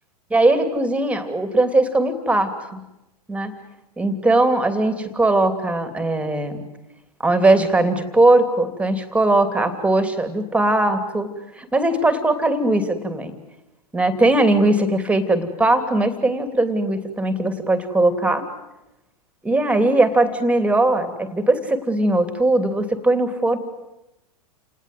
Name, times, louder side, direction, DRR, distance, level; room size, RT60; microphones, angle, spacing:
voice 1, 0.3-2.8 3.3-3.5 4.0-6.6 7.2-11.3 11.6-13.3 13.9-18.5 19.4-23.6, right 2 dB, 5° right, 9 dB, 2.9 m, -19 dB
29.0 x 19.5 x 9.2 m, 0.92 s
hypercardioid pair, 105°, 20 cm